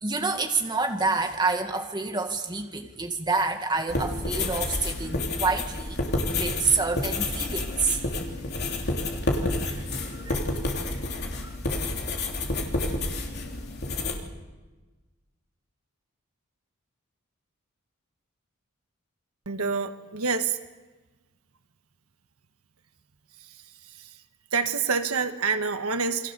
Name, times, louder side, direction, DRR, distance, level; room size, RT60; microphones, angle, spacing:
voice 1, 0.0-6.0 6.3-8.0 9.7-10.4 11.4-11.5, right 4 dB, 20° right, 3 dB, 2.0 m, -28 dB
sound 1, 3.9-14.1, left 2 dB, 45° left, 3.3 m, -29 dB
voice 2, 19.4-20.6 23.4-23.6 23.8-24.2 24.5-26.3, right 5 dB, 85° right, 8 dB, 1.5 m, -27 dB
29.0 x 23.0 x 6.9 m, 1.2 s
head